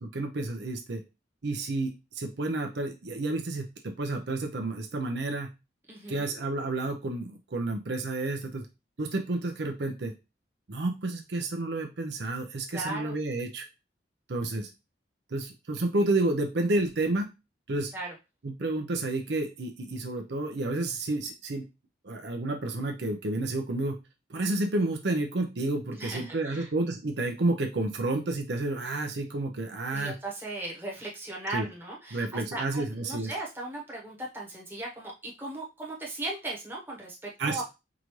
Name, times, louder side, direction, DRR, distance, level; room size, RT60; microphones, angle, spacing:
voice 1, 0.0-1.0 1.4-5.5 6.1-8.7 9.0-10.1 10.7-13.7 14.3-14.7 15.3-17.3 17.7-17.9 18.4-21.7 22.0-24.0 24.3-30.1 31.5-31.7 32.1-33.3 37.4-37.6, right 2 dB, 65° right, 4 dB, 0.6 m, -30 dB
voice 2, 5.9-6.3 12.7-13.1 17.9-18.1 26.0-26.7 29.9-37.6, right 2 dB, 10° right, -3 dB, 1.0 m, -37 dB
4.8 x 2.6 x 3.0 m, 0.26 s
head